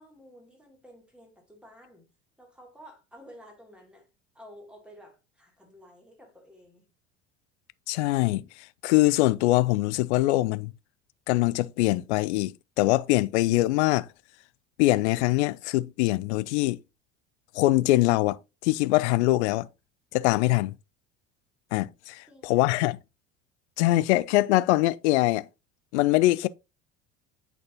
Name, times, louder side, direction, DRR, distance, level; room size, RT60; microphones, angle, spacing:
voice 1, 0.0-2.1 2.4-4.1 4.3-6.9 22.3-22.8, equal, 5° right, 2.6 m, -52 dB
voice 2, 7.9-8.4 8.8-10.7 11.3-14.1 14.8-16.8 17.5-18.4 18.6-19.7 20.1-20.7 21.7-23.0 23.8-25.5 25.9-26.5, left 18 dB, 60° left, 0.5 m, -23 dB
9.1 x 4.2 x 2.8 m
figure-of-eight pair, 65°, 38 cm